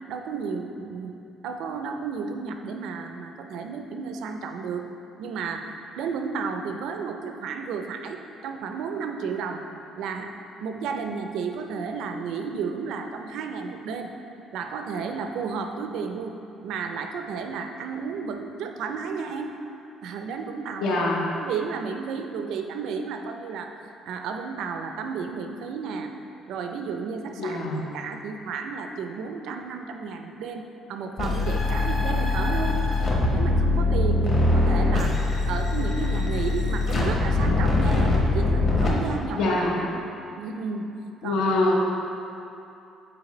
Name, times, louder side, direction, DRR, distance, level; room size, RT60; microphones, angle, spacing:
voice 1, 0.1-1.1 1.4-4.9 5.2-5.7 6.0-9.6 10.0-10.3 10.6-14.1 14.5-16.3 16.6-19.6 20.0-21.0 21.4-23.7 24.1-26.1 26.5-32.8 33.3-35.2 35.5-40.1 40.4-40.9 41.2-41.4, right 5 dB, 70° right, 5 dB, 0.4 m, -32 dB
voice 2, 20.8-21.2 27.4-27.8 39.3-39.8 41.2-41.8, left 2 dB, 85° left, -2 dB, 0.9 m, -24 dB
sound 1, 31.2-38.9, left 2 dB, 35° left, 0.9 m, -22 dB
7.6 x 4.5 x 3.1 m, 2.7 s
cardioid pair, 170°, 0 cm